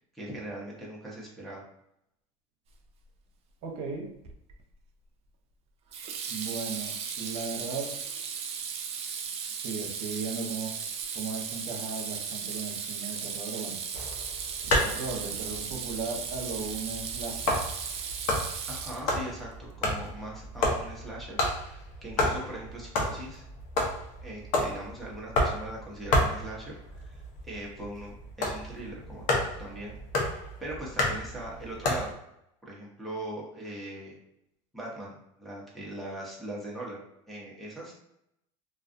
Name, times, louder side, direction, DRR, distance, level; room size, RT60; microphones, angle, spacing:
voice 1, 0.1-1.6 18.7-23.4 24.2-30.0 30.6-32.1 32.6-34.2 34.7-37.0 37.3-37.9, right 1 dB, ahead, -6 dB, 0.8 m, -40 dB
voice 2, 3.6-4.1 6.3-8.0 9.6-10.7 11.1-13.8 14.6-17.5, right 4 dB, 65° right, 0 dB, 0.8 m, -36 dB
Water tap faucet / Sink (filling or washing), 4.3-4.6 5.9-19.3, right 6 dB, 40° right, 0.4 m, -36 dB
sound 1, 13.9-32.1, left 1 dB, 55° left, 0.7 m, -31 dB
2.3 x 2.3 x 2.5 m, 0.79 s
supercardioid pair, 115°, 16 cm